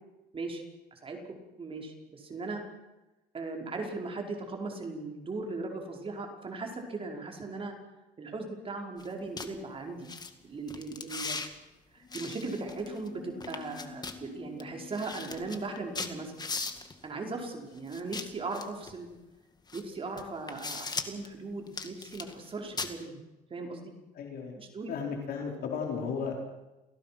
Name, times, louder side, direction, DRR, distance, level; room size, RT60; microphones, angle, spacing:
voice 1, 0.9-2.6 3.3-7.7 8.2-10.1 10.4-11.4 11.9-16.3 17.0-19.1 19.7-23.2 23.5-23.9 24.6-24.9, right 3 dB, 35° right, 2 dB, 5.2 m, -38 dB
sound 1, 9.0-9.1 9.4-9.5 10.0-10.3 10.7-11.5 12.1-13.1 13.4-14.2 14.6-14.7 14.9-17.0 17.9-18.9 19.7-19.8 20.2-21.3 21.7-22.5 22.8-22.9, left 4 dB, 25° left, 2.2 m, -38 dB
sound 2, 12.0-17.9, left 4 dB, 45° left, 4.8 m, -50 dB
voice 2, 24.1-24.6 24.9-26.4, left 6 dB, 65° left, 1 dB, 4.7 m, -34 dB
28.5 x 17.5 x 6.1 m, 1.0 s
cardioid pair, 110°, 17 cm